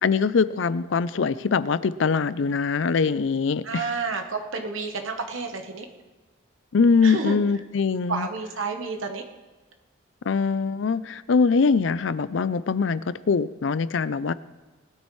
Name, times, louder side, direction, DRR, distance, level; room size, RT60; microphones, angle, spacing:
voice 1, 0.0-3.8 6.7-8.3 10.3-14.3, left 5 dB, 65° left, 17 dB, 0.4 m, -23 dB
voice 2, 3.6-5.9 7.0-7.4 8.1-9.2, right 4 dB, 75° right, 4 dB, 1.2 m, -30 dB
19.5 x 12.5 x 3.2 m, 1.2 s
head